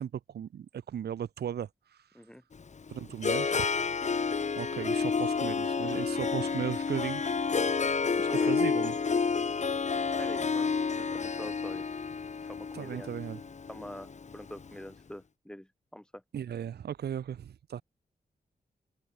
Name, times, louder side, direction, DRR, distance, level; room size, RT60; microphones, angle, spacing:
voice 1, 0.0-2.1 2.9-3.7 4.6-7.6 8.2-8.9 11.0-11.1 12.7-13.4 16.3-17.8, right 9 dB, 80° right, 0.7 m, -36 dB
Harp, 2.5-14.7, left 5 dB, 45° left, 1.0 m, -30 dB
voice 2, 10.2-10.7 11.1-12.0 12.4-13.1 13.7-16.2, equal, 5° left, 4.0 m, -45 dB
cardioid pair, 55°, 16 cm